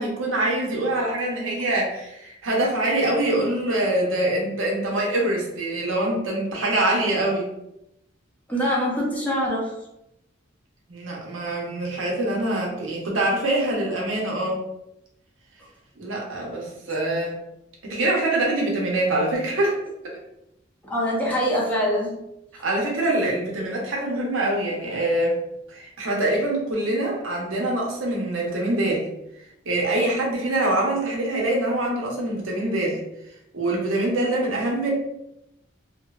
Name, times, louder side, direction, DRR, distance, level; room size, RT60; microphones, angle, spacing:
voice 1, 0.0-7.5 10.9-14.6 16.0-17.3 17.8-19.8 20.0-20.2 22.6-25.4 25.7-29.1 29.7-33.0 33.5-34.9, right 1 dB, 80° right, -2 dB, 0.7 m, -24 dB
voice 2, 8.5-9.7 20.8-22.2, equal, 10° left, -5 dB, 0.6 m, -24 dB
2.7 x 2.0 x 2.3 m, 0.84 s
head